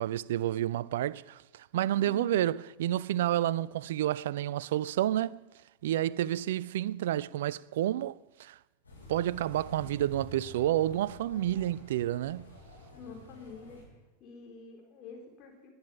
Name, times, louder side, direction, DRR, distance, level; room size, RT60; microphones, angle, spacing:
voice 1, 0.0-5.4 5.8-8.6 9.1-12.5, right 12 dB, 55° right, 0.4 m, -30 dB
voice 2, 2.0-2.4 12.8-13.9 14.2-15.7, left 4 dB, 35° left, 4.1 m, -47 dB
sound 1, 8.8-13.8, left 1 dB, 80° left, 7.4 m, -49 dB
21.0 x 9.6 x 5.8 m
figure-of-eight pair, 90°, 0 cm